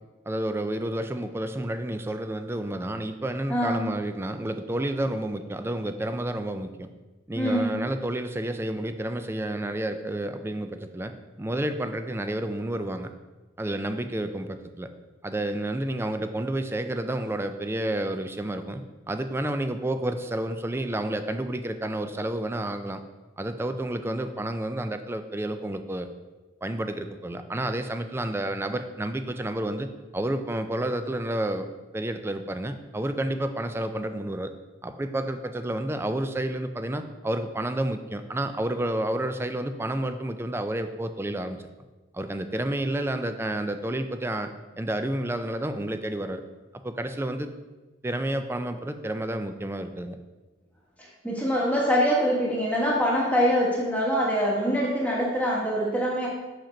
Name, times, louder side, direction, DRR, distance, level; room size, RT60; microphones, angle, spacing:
voice 1, 0.3-6.9 7.3-13.1 13.6-14.9 15.2-18.8 19.1-23.0 23.4-26.1 26.6-29.9 30.1-31.7 31.9-34.5 34.8-41.6 42.1-46.4 46.8-47.5 48.0-50.2, right 1 dB, 15° right, 8 dB, 0.4 m, -30 dB
voice 2, 3.5-3.8 7.3-7.7 51.0-56.3, equal, 10° left, -3 dB, 1.3 m, -24 dB
5.9 x 5.1 x 5.1 m, 1.2 s
head